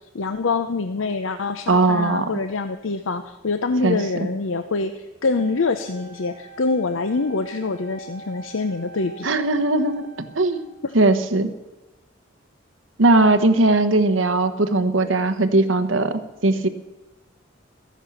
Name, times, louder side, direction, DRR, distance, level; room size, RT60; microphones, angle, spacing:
voice 1, 0.0-9.3 10.8-10.9, left 3 dB, 85° left, 9 dB, 0.7 m, -25 dB
voice 2, 1.7-2.3 3.8-4.0 9.2-10.1 10.3-10.6 10.9-11.5 13.0-16.7, right 2 dB, 80° right, 10 dB, 1.1 m, -19 dB
Wind instrument woodwind instrument, 5.2-10.7, right 3 dB, 45° right, 4.5 m, -44 dB
14.5 x 11.0 x 7.1 m, 1.1 s
head